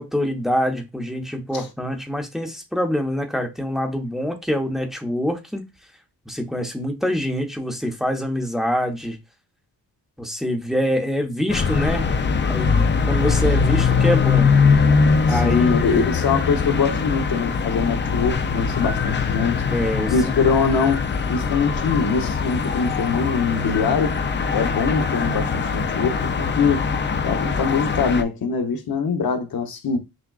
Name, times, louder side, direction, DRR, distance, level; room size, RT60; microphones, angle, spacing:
voice 1, 0.0-5.7 6.3-9.2 10.2-12.1 12.5-14.5 15.3-16.0 19.7-20.1, equal, ahead, 0.8 m, -25 dB
sound 1, 11.5-28.2, left 5 dB, 30° left, 0.4 m, -21 dB
voice 2, 15.3-19.6 20.1-24.2 24.5-26.8 27.2-30.0, left 5 dB, 65° left, 0.9 m, -23 dB
6.1 x 2.3 x 2.3 m
wide cardioid pair, 125°, 38 cm